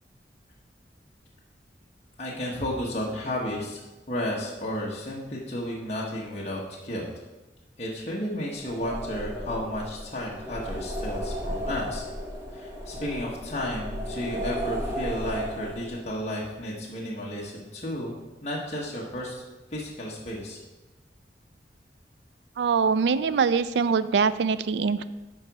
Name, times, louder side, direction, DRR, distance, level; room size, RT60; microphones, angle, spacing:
voice 1, 2.2-3.8 4.1-7.1 7.8-12.0 12.5-18.2 18.4-19.4 19.7-20.6, left 1 dB, 40° left, -4 dB, 1.1 m, -32 dB
sound 1, 8.5-16.1, equal, 20° right, 1.3 m, -34 dB
voice 2, 22.6-25.0, right 5 dB, 75° right, 14 dB, 0.4 m, -23 dB
10.5 x 4.0 x 4.8 m, 1.1 s
head